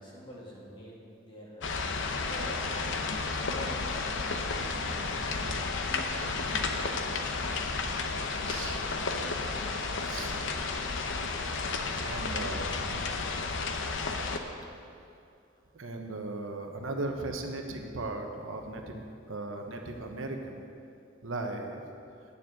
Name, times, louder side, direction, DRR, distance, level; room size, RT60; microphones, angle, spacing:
voice 1, 0.0-1.8 2.1-2.7 3.4-5.2 5.7-6.8, equal, 25° left, -4 dB, 2.2 m, -47 dB
sound 1, 1.6-14.4, left 4 dB, 65° left, 0.8 m, -32 dB
voice 2, 4.6-5.7 8.3-9.0 10.0-10.3 11.7-13.1 15.7-20.6 21.2-21.8, right 2 dB, 75° right, 3 dB, 1.0 m, -38 dB
10.0 x 6.9 x 7.7 m, 2.6 s
head